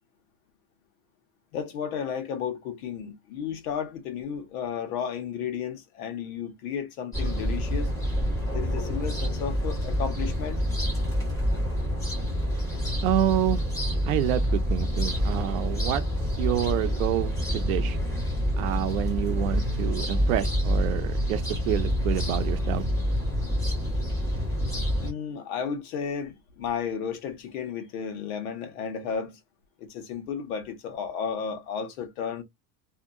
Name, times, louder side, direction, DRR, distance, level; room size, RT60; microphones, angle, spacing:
voice 1, 1.5-7.9 8.5-10.6 25.0-29.4 29.8-32.4, left 7 dB, 75° left, 1.1 m, -33 dB
sound 1, 7.1-25.1, equal, 10° left, 1.3 m, -27 dB
voice 2, 13.0-13.6 14.0-16.0 16.4-18.0 18.6-22.8, right 12 dB, 70° right, 0.6 m, -28 dB
2.8 x 2.7 x 2.5 m
supercardioid pair, 180°, 43 cm